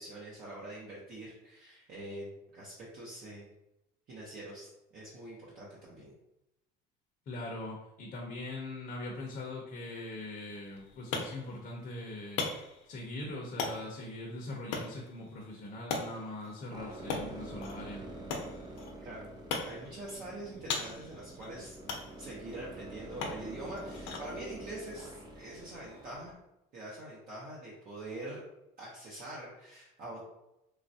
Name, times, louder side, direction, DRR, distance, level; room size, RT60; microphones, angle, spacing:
voice 1, 0.0-3.5 4.1-6.1 19.0-19.3 19.6-21.8 22.2-26.3 26.7-28.4 28.8-30.2, right 1 dB, 50° right, -6 dB, 0.8 m, -44 dB
voice 2, 7.3-12.4 12.9-18.0, left 2 dB, 35° left, -1 dB, 0.6 m, -41 dB
sound 1, 10.5-26.1, left 4 dB, 85° left, 0.6 m, -42 dB
sound 2, 16.7-26.3, right 1 dB, 20° right, 0.4 m, -47 dB
3.1 x 2.4 x 2.6 m, 0.89 s
cardioid pair, 145°, 20 cm